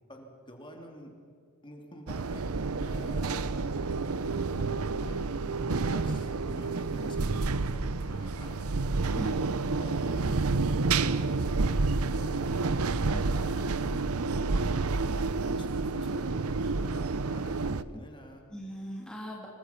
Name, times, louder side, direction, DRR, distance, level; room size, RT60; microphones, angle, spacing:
voice 1, 0.1-1.1 1.6-3.5 4.3-5.2 5.7-8.8 9.8-10.5 11.1-11.7 11.9-12.8 13.1-14.3 15.0-18.4, equal, 20° left, 2 dB, 3.2 m, -48 dB
sound 1, 2.1-17.8, right 3 dB, 90° right, 0.8 m, -29 dB
voice 2, 9.1-9.6 13.1-13.5 18.5-19.5, equal, 5° left, -2 dB, 2.5 m, -40 dB
27.5 x 23.0 x 5.9 m, 2.4 s
head